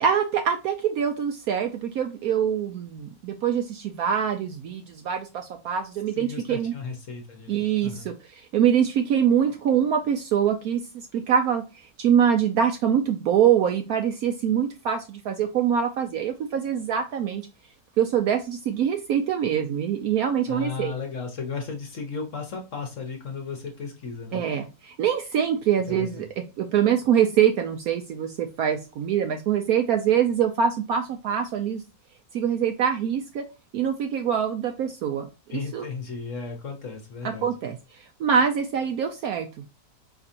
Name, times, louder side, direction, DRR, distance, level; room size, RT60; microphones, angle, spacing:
voice 1, 0.0-6.7 7.5-11.6 12.0-17.4 18.0-20.9 24.3-31.8 32.3-33.5 33.7-35.8 37.2-39.5, right 8 dB, 70° right, 5 dB, 0.9 m, -24 dB
voice 2, 6.1-8.1 20.5-24.4 25.9-26.3 35.5-37.5, left 5 dB, 50° left, 2 dB, 1.3 m, -35 dB
4.9 x 3.4 x 2.7 m, 0.29 s
omnidirectional pair, 1.9 m